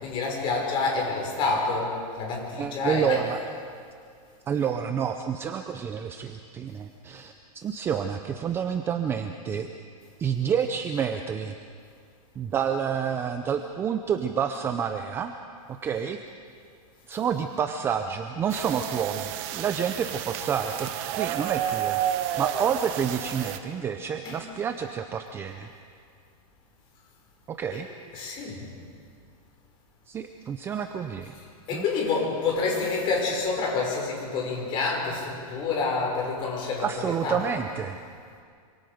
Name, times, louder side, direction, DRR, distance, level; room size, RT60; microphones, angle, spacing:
voice 1, 0.0-3.2 24.2-24.4 28.1-28.7 31.7-36.9 37.2-37.4, left 4 dB, 25° left, -1 dB, 5.8 m, -28 dB
voice 2, 2.6-3.4 4.5-9.7 10.2-11.6 12.4-15.3 15.7-16.2 17.1-25.7 27.5-27.9 30.1-31.3 31.7-31.9 32.7-32.8 36.8-38.0, right 7 dB, 10° right, 7 dB, 0.5 m, -29 dB
sound 1, 18.5-23.6, right 11 dB, 35° right, 1.2 m, -31 dB
27.0 x 26.0 x 5.1 m, 2.2 s
supercardioid pair, 160°, 19 cm